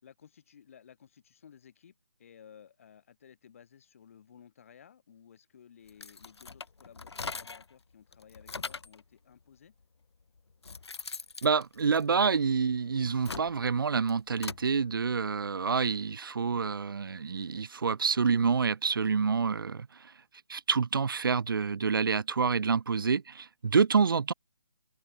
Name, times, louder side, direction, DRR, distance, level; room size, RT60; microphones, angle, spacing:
voice 1, 0.0-9.7, left 8 dB, 30° left, 5.6 m, -56 dB
sound 1, 5.9-7.7 8.1-9.0 9.8-9.9 10.4-12.5 13.0-14.7, left 4 dB, 90° left, 1.5 m, -41 dB
voice 2, 11.4-20.1 20.5-24.3, right 5 dB, 55° right, 0.8 m, -27 dB
hypercardioid pair, 175°, 13 cm